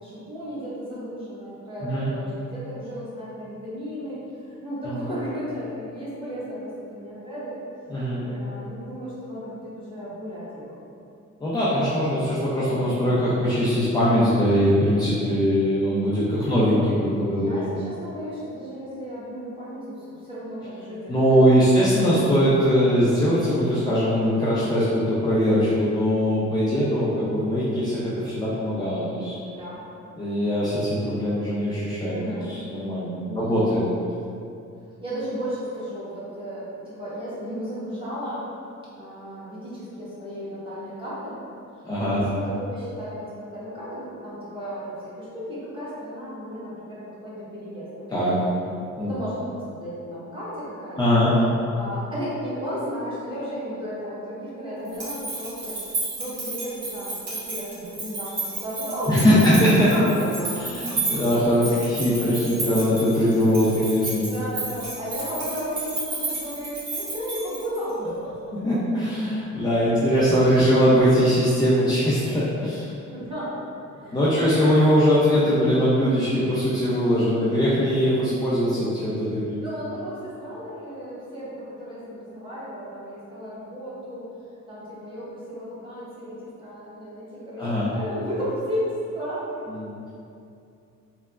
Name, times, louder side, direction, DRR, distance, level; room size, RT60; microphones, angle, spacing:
voice 1, 0.0-4.2 4.6-7.6 8.2-10.8 17.3-22.8 26.7-27.0 29.4-29.8 32.1-32.5 33.2-33.6 34.8-38.4 39.0-41.4 42.1-47.9 49.0-51.2 51.7-55.8 56.2-61.2 64.2-68.5 69.9-70.1 73.1-74.5 77.3-77.7 79.6-84.3 84.7-89.6, equal, 15° right, -10 dB, 1.1 m, -34 dB
voice 2, 7.9-8.2 11.4-17.6 21.1-29.3 30.2-32.2 32.5-33.8 41.8-42.2 48.1-48.3 49.0-49.1 51.0-51.3 59.1-59.9 60.6-64.3 68.6-73.0 74.1-79.6 87.6-87.9 89.8-90.1, equal, 15° left, -10 dB, 0.4 m, -21 dB
sound 1, 54.9-67.9, right 3 dB, 55° right, 1.2 m, -32 dB
3.3 x 2.1 x 2.3 m, 2.6 s
cardioid pair, 90°, 30 cm